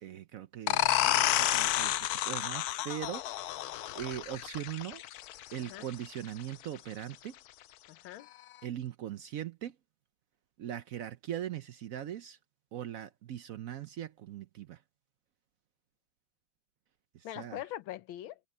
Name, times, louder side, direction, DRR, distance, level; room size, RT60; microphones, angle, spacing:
voice 1, 0.0-3.5 4.0-5.0 5.5-7.3 8.6-9.7 10.6-12.4 12.7-14.8 17.4-17.6, right 11 dB, 90° right, 0.7 m, -40 dB
sound 1, 0.7-6.1, left 13 dB, 90° left, 0.8 m, -30 dB
voice 2, 3.6-4.0 5.6-5.9 7.9-8.3 17.2-18.4, left 13 dB, 75° left, 1.6 m, -43 dB
omnidirectional pair, 2.3 m